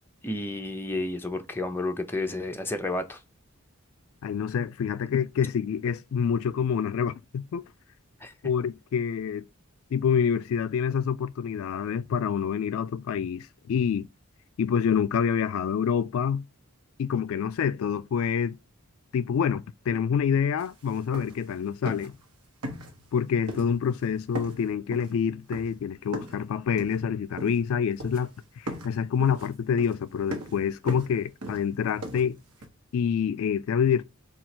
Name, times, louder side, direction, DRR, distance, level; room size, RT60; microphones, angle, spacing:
voice 1, 0.2-3.2 8.2-8.3, left 2 dB, 10° left, 0.5 m, -31 dB
voice 2, 4.2-7.6 8.4-9.4 9.9-14.1 14.6-16.4 17.0-18.6 19.1-22.1 23.1-32.4 32.9-34.0, left 7 dB, 65° left, 0.3 m, -27 dB
sound 1, 20.6-20.7 20.9-21.5 21.8-22.2 22.6-23.2 23.5-24.0 24.3-26.4 26.8-27.7 28.0-28.4 28.7-32.7, equal, 90° right, 1.1 m, -39 dB
4.6 x 2.4 x 4.1 m
head